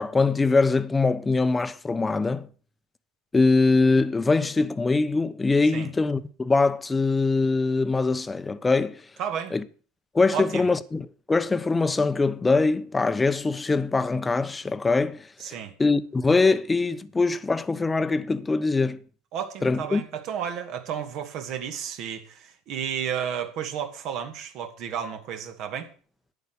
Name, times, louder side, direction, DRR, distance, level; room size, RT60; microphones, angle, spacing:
voice 1, 0.0-2.5 3.3-9.0 9.5-9.6 10.1-15.5 15.8-19.0 19.6-20.0, left 3 dB, 20° left, 1.0 m, -23 dB
voice 2, 9.2-9.6 10.3-10.7 15.4-15.7 19.3-25.9, right 8 dB, 55° right, 2.4 m, -32 dB
11.0 x 9.6 x 6.4 m
hypercardioid pair, 75°, 0 cm